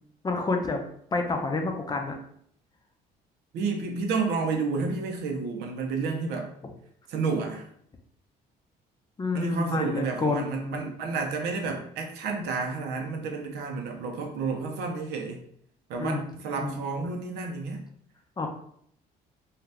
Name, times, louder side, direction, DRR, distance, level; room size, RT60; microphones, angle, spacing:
voice 1, 0.2-0.8 1.1-2.1 9.2-10.8 16.0-16.2 16.6-16.8 18.4-18.5, left 3 dB, 25° left, 3 dB, 0.5 m, -29 dB
voice 2, 3.5-6.5 7.1-7.7 9.3-15.4 15.9-17.8, right 4 dB, 80° right, 2 dB, 0.7 m, -30 dB
2.8 x 2.4 x 3.3 m, 0.67 s
cardioid pair, 110°, 17 cm